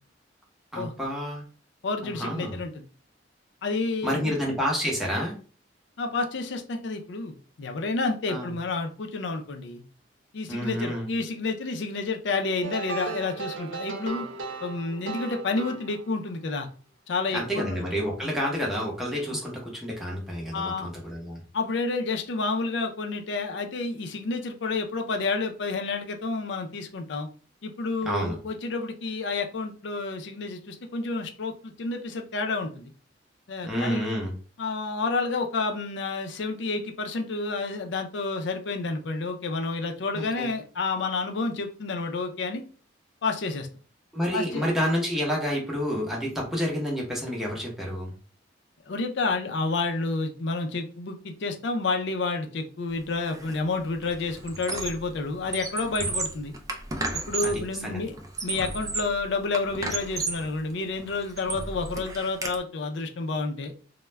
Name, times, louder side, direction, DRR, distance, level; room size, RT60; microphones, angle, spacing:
voice 1, 0.7-1.4 2.0-2.6 4.0-5.4 8.3-8.5 10.5-11.1 17.3-21.4 28.0-28.4 33.6-34.3 40.1-40.5 44.1-48.1 57.4-57.5 57.8-58.0, equal, ahead, -3 dB, 0.8 m, -29 dB
voice 2, 1.8-2.9 3.6-4.3 6.0-9.8 10.3-14.3 14.6-16.7 17.1-17.8 18.2-18.3 20.5-20.9 21.5-27.3 27.6-32.9 33.5-34.0 34.6-42.6 43.2-43.7 44.3-44.7 48.9-56.5 57.3-58.1 58.4-63.7, left 3 dB, 70° left, 4 dB, 0.5 m, -30 dB
sound 1, 12.6-16.4, right 4 dB, 80° right, 0.4 m, -36 dB
Squeak, 53.3-53.6 53.9-55.1 55.4-57.7 58.2-59.2 59.5-60.5 61.0-62.5, right 3 dB, 20° right, 0.3 m, -33 dB
2.3 x 2.1 x 3.1 m, 0.39 s
head